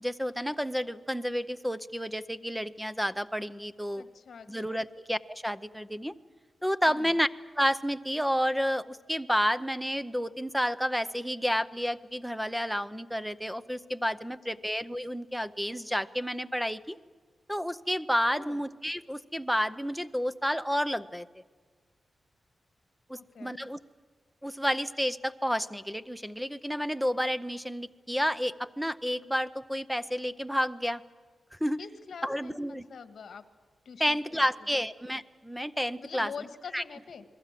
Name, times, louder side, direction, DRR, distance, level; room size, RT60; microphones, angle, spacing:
voice 1, 0.0-4.0 4.5-6.1 6.6-7.3 7.6-17.0 17.5-21.3 23.1-23.8 24.4-31.0 31.6-31.8 32.2-32.8 34.0-36.3 36.7-36.8, equal, ahead, 13 dB, 0.6 m, -30 dB
voice 2, 3.9-4.8 6.9-7.2 18.2-18.6 23.1-23.6 31.8-33.4 33.8-34.8 36.0-37.2, left 6 dB, 65° left, 10 dB, 1.7 m, -45 dB
28.5 x 21.5 x 7.6 m, 1.5 s
wide cardioid pair, 170°, 0 cm